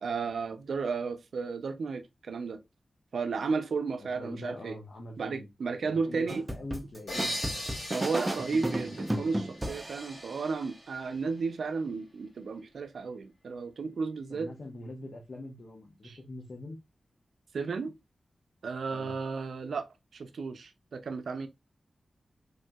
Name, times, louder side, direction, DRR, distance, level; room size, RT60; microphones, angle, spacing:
voice 1, 0.0-2.6 3.1-4.8 5.2-6.5 7.9-14.5 16.0-16.2 17.5-17.9 18.6-19.9 20.1-21.5, right 4 dB, 85° right, 0.4 m, -33 dB
voice 2, 4.0-5.5 5.7-7.4 14.3-16.8 18.9-19.2, left 1 dB, 60° left, 0.8 m, -43 dB
sound 1, 6.3-10.6, right 1 dB, 20° right, 0.5 m, -34 dB
sound 2, 7.1-10.6, equal, 80° left, 2.0 m, -39 dB
3.4 x 2.6 x 2.2 m
cardioid pair, 65°, 0 cm